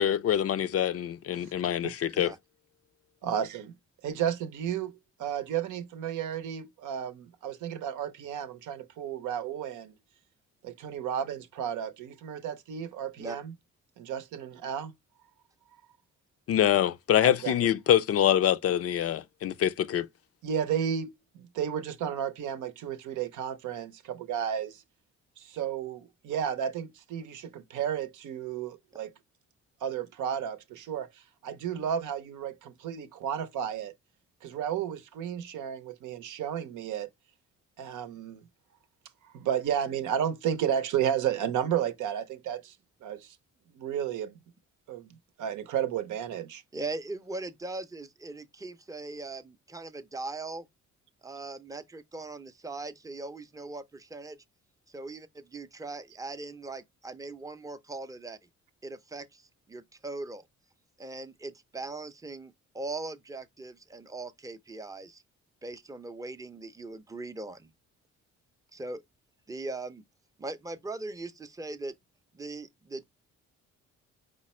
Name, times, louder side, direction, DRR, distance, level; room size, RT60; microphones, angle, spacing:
voice 1, 0.0-2.3 16.5-20.1, left 10 dB, 50° left, 0.4 m, -25 dB
voice 2, 3.2-3.7 4.0-9.9 10.6-13.5 14.0-14.9 17.2-17.6 20.4-24.8 25.4-29.1 29.8-33.9 34.4-37.1 37.8-38.4 39.2-42.8 43.0-43.3 43.7-44.3 44.9-45.1 45.4-46.6, right 9 dB, 80° right, 0.7 m, -32 dB
voice 3, 46.7-50.7 51.2-54.4 54.9-58.4 58.8-60.5 61.0-65.2 65.6-67.7 68.7-69.0 69.5-70.0 70.4-72.0 72.3-73.1, right 2 dB, 10° right, 0.5 m, -40 dB
5.1 x 2.1 x 4.2 m
cardioid pair, 90°, 30 cm